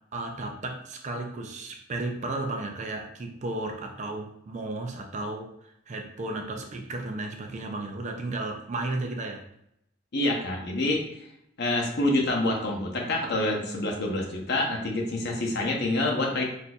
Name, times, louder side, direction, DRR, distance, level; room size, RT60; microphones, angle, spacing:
voice 1, 0.1-9.5, right 2 dB, 40° right, 3 dB, 0.4 m, -34 dB
voice 2, 10.1-11.0 11.6-16.4, left 2 dB, 60° left, 0 dB, 0.7 m, -27 dB
4.1 x 2.6 x 2.3 m, 0.77 s
head